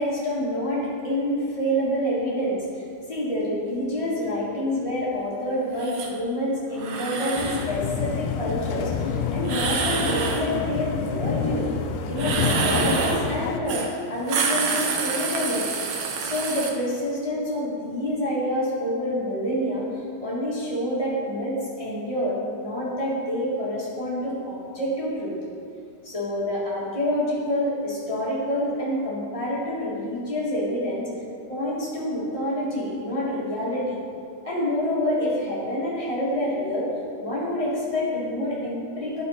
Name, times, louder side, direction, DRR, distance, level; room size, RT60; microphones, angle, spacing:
voice 1, 0.0-2.6 3.1-11.7 12.1-15.6 16.2-25.3 26.0-31.1 31.5-34.0 34.4-36.9 37.2-39.2, left 1 dB, 20° left, -7 dB, 0.9 m, -27 dB
sound 1, 5.8-6.1 6.8-7.7 9.4-10.5 12.1-13.3 13.7-13.9 14.2-16.7, right 5 dB, 75° right, 1.3 m, -27 dB
sound 2, 7.4-13.6, left 6 dB, 90° left, 2.1 m, -28 dB
11.5 x 5.2 x 4.2 m, 2.4 s
omnidirectional pair, 3.5 m